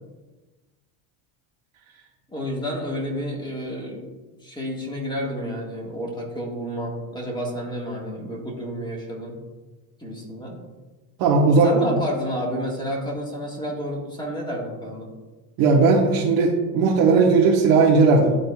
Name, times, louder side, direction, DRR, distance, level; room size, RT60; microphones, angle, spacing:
voice 1, 2.3-4.1 4.4-9.3 10.0-10.6 11.6-15.1, equal, 10° left, -2 dB, 1.6 m, -30 dB
voice 2, 11.2-11.8 15.6-18.3, right 4 dB, 65° right, -3 dB, 1.1 m, -17 dB
11.0 x 3.8 x 2.3 m, 1.2 s
supercardioid pair, 115°, 48 cm